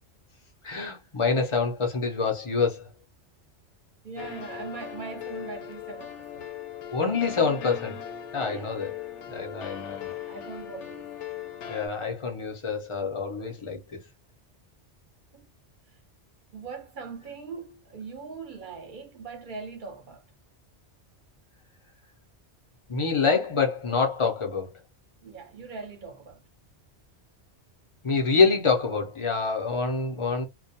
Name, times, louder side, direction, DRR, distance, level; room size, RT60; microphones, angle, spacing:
voice 1, 0.6-2.8 6.9-8.0 8.3-8.9 9.3-10.1 11.7-13.8 22.9-24.7 28.0-30.4, left 4 dB, 35° left, 0.6 m, -26 dB
voice 2, 4.0-6.5 8.5-8.7 10.3-11.0 15.3-15.5 16.5-20.2 25.2-26.4, right 4 dB, 50° right, 0.9 m, -40 dB
sound 1, 4.2-11.9, left 9 dB, 85° left, 0.9 m, -39 dB
2.4 x 2.1 x 2.7 m
omnidirectional pair, 1.2 m